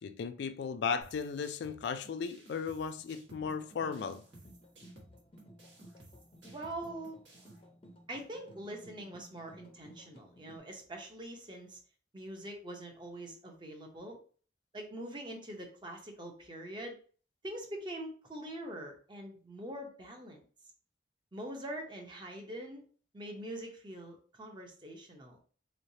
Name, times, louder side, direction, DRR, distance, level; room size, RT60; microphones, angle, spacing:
voice 1, 0.0-4.2, left 6 dB, 60° left, 0.3 m, -36 dB
sound 1, 1.0-7.6, right 1 dB, 70° right, 1.3 m, -58 dB
sound 2, 2.9-10.6, equal, 30° left, 0.6 m, -57 dB
voice 2, 6.4-7.2 8.1-11.8 12.1-14.2 14.7-17.0 17.4-20.4 21.3-22.8 23.1-25.4, right 1 dB, 25° right, 0.8 m, -44 dB
3.8 x 3.2 x 2.7 m
head